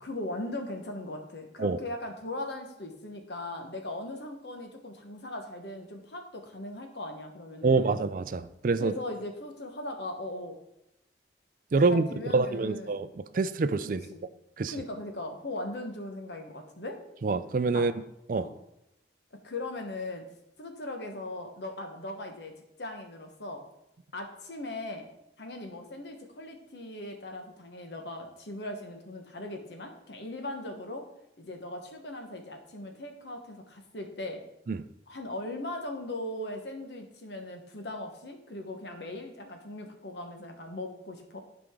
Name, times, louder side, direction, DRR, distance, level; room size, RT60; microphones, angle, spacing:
voice 1, 0.0-8.0 8.8-10.6 11.9-13.0 14.1-14.3 14.7-17.0 17.7-17.9 18.3-18.5 19.3-20.2 20.6-22.5 22.8-23.6 24.1-25.1 25.4-31.1 31.4-34.4 35.1-41.4, left 1 dB, 65° left, 4 dB, 1.2 m, -39 dB
voice 2, 7.6-8.9 11.7-12.1 12.3-14.1 14.6-14.7 17.2-17.9 18.3-18.5 34.7-34.8, right 4 dB, 45° right, 13 dB, 0.4 m, -26 dB
11.5 x 5.1 x 3.7 m, 0.86 s
head